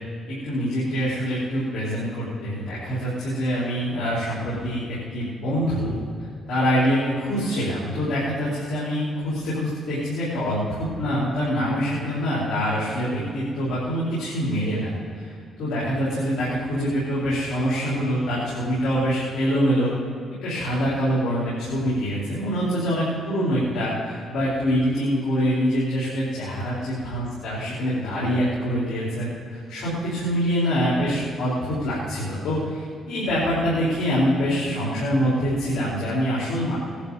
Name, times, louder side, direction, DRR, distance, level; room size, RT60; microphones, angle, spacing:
voice 1, 0.3-19.9 20.4-26.8 27.1-36.8, equal, 75° left, -9 dB, 4.7 m, -25 dB
20.5 x 11.5 x 4.3 m, 2.3 s
cardioid pair, 90°, 0 cm